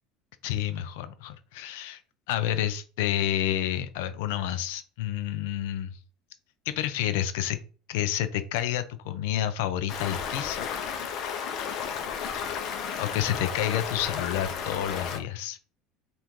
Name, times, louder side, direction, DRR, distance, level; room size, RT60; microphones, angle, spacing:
voice 1, 0.4-2.0 2.3-6.0 6.7-7.6 7.9-10.7 13.0-15.6, left 11 dB, 85° left, 11 dB, 0.4 m, -29 dB
Stream, 9.9-15.2, left 7 dB, 50° left, 0.7 m, -33 dB
3.6 x 2.5 x 4.5 m, 0.39 s
cardioid pair, 145°, 0 cm